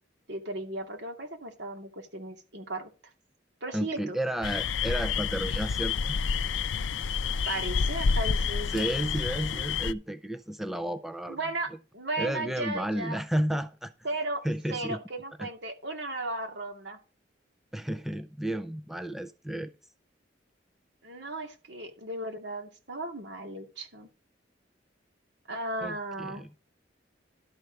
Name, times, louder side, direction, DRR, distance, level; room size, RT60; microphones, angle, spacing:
voice 1, 0.3-2.9 3.6-4.2 5.4-5.6 7.5-8.9 11.3-13.2 14.0-17.0 21.0-24.1 25.5-26.5, right 2 dB, 70° right, 2.4 m, -36 dB
voice 2, 3.7-6.2 8.7-11.4 12.2-13.9 14.4-15.0 15.4-15.5 17.7-19.7 25.8-26.5, right 1 dB, ahead, 0.4 m, -32 dB
sound 1, 4.4-9.9, left 5 dB, 85° left, 0.5 m, -29 dB
12.0 x 4.5 x 6.4 m
head